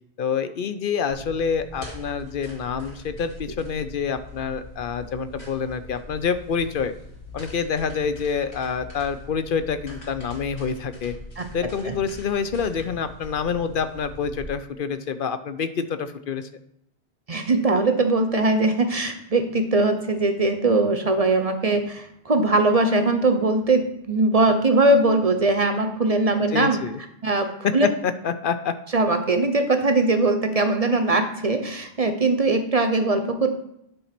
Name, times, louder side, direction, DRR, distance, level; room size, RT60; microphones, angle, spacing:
voice 1, 0.2-6.9 7.3-11.1 11.5-16.5 26.5-27.0 27.6-28.8, left 6 dB, 55° left, 11 dB, 0.8 m, -27 dB
sound 1, 1.1-14.5, left 1 dB, 75° left, 2.7 m, -42 dB
voice 2, 17.3-26.8 27.2-27.9 28.9-33.5, right 2 dB, 40° right, 7 dB, 0.7 m, -21 dB
9.9 x 4.2 x 5.9 m, 0.75 s
omnidirectional pair, 1.1 m